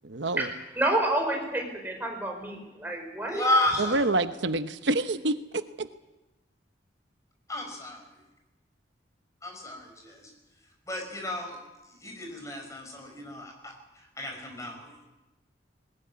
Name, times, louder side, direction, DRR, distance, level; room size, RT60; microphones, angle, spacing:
voice 1, 0.0-0.5 3.8-5.9, right 2 dB, 80° right, 10 dB, 1.0 m, -27 dB
voice 2, 0.7-3.4, right 1 dB, 10° right, 2 dB, 5.0 m, -29 dB
voice 3, 3.3-4.1 7.5-8.0 9.4-10.3 10.9-11.6 12.0-15.0, left 1 dB, 15° left, 2 dB, 5.8 m, -32 dB
20.5 x 19.5 x 9.7 m, 1.0 s
head